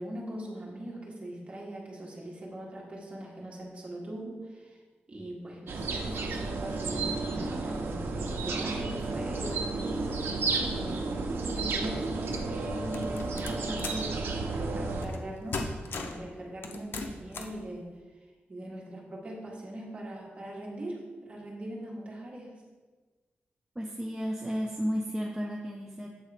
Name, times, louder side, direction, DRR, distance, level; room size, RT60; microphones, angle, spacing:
voice 1, 0.0-4.8 5.1-10.0 10.5-17.9 18.5-22.5, right 1 dB, 30° right, -3 dB, 1.6 m, -41 dB
sound 1, 5.7-15.1, right 3 dB, 75° right, 0.8 m, -32 dB
sound 2, 12.9-14.1 15.0-15.3 15.5-16.2 16.6-17.6, left 3 dB, 70° left, 0.7 m, -37 dB
voice 2, 23.8-26.1, equal, 10° right, 0 dB, 0.5 m, -33 dB
8.1 x 3.8 x 5.0 m, 1.4 s
wide cardioid pair, 130°, 4 cm